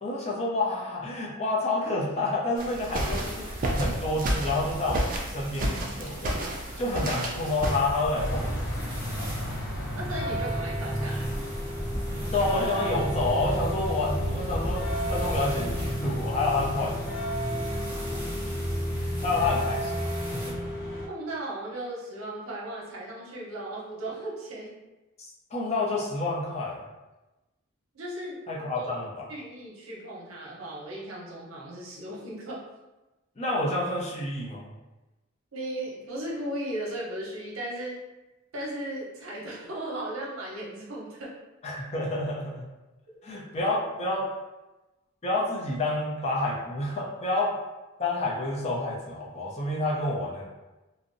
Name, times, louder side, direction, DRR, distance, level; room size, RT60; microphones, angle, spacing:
voice 1, 0.0-6.4 6.8-9.0 12.2-17.2 18.9-20.6 25.2-26.8 28.5-29.2 33.4-34.7 41.6-42.7 43.2-44.3 45.2-47.6 48.0-50.5, left 2 dB, 30° left, -3 dB, 0.5 m, -29 dB
sound 1, 2.6-7.8, right 1 dB, 40° right, 0.3 m, -31 dB
sound 2, 2.9-20.5, equal, 10° right, 0.7 m, -39 dB
sound 3, 8.1-21.1, equal, 70° left, 0.7 m, -31 dB
voice 2, 10.0-11.4 18.1-18.2 21.1-24.8 27.9-29.0 29.3-32.6 35.5-38.0 38.5-41.4, right 1 dB, 75° right, -4 dB, 0.7 m, -36 dB
2.6 x 2.0 x 2.5 m, 1.1 s
head